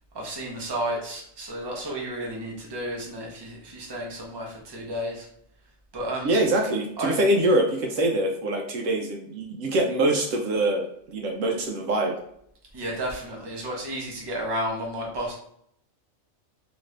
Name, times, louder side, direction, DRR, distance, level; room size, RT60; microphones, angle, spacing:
voice 1, 0.1-5.3 5.9-6.3 7.0-7.1 12.7-15.3, right 1 dB, 25° right, -2 dB, 0.6 m, -32 dB
voice 2, 6.2-12.1, right 1 dB, 70° right, 2 dB, 0.9 m, -24 dB
2.9 x 2.5 x 3.2 m, 0.70 s
omnidirectional pair, 1.4 m